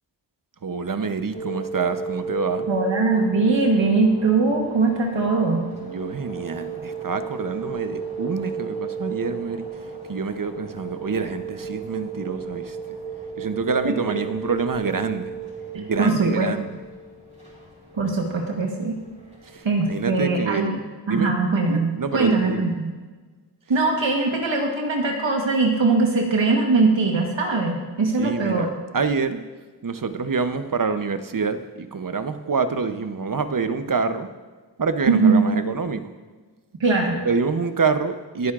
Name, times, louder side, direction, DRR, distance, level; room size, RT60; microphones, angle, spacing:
voice 1, 0.6-2.7 5.8-9.7 10.1-12.8 13.4-15.3 15.8-16.7 19.9-20.8 21.1-21.3 21.7-22.7 28.2-28.7 28.9-29.4 29.8-34.3 34.8-36.0 37.3-38.5, right 4 dB, 50° right, 10 dB, 0.7 m, -26 dB
sound 1, 1.3-20.2, right 5 dB, 15° right, 3.6 m, -34 dB
voice 2, 2.7-5.6 13.8-13.9 16.0-16.5 17.9-19.0 19.6-20.7 21.1-22.9 23.7-28.7 35.1-35.5 36.8-37.2, right 3 dB, 85° right, 1 dB, 1.2 m, -21 dB
20.5 x 9.4 x 2.4 m, 1.4 s
wide cardioid pair, 50°, 44 cm